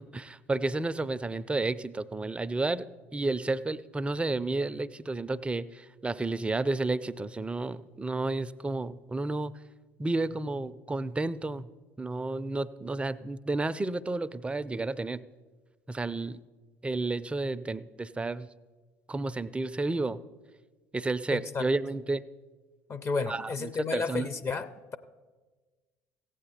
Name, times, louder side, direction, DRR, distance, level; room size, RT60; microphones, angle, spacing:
voice 1, 0.0-2.9 3.1-9.5 10.0-11.7 12.0-15.2 15.9-16.4 16.8-18.5 19.1-20.2 20.9-22.2 23.3-24.3, right 2 dB, 15° right, 15 dB, 0.4 m, -31 dB
voice 2, 21.3-21.6 22.9-25.0, left 4 dB, 35° left, 13 dB, 0.6 m, -32 dB
15.0 x 8.7 x 4.2 m, 1.3 s
hypercardioid pair, 65°, 8 cm